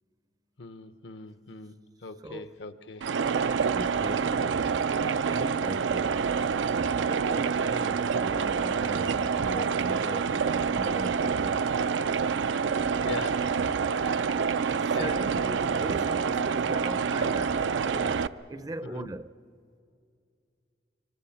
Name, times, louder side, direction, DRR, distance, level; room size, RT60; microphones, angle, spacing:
voice 1, 0.6-3.1 13.0-13.6 13.9-14.4 14.8-15.2 16.2-16.5 18.8-19.1, left 3 dB, 75° left, 0.9 m, -41 dB
voice 2, 2.2-2.6 3.6-6.4 6.9-11.6 12.7-13.2 14.8-19.3, right 1 dB, 20° right, 0.5 m, -40 dB
sound 1, 3.0-18.3, right 6 dB, 90° right, 0.5 m, -27 dB
26.0 x 24.5 x 5.8 m
head